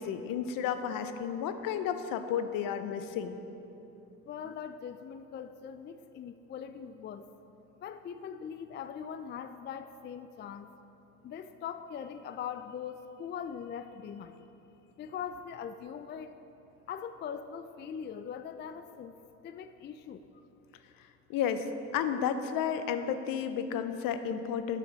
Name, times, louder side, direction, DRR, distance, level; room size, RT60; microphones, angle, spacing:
voice 1, 0.0-3.4 21.3-21.7 21.9-24.8, left 8 dB, 55° left, 10 dB, 0.7 m, -32 dB
voice 2, 4.3-7.2 7.8-10.7 11.2-14.4 15.0-16.3 16.9-19.2 19.4-20.2, left 8 dB, 30° left, 10 dB, 0.4 m, -41 dB
12.0 x 6.2 x 4.0 m, 2.9 s
hypercardioid pair, 60°, 40 cm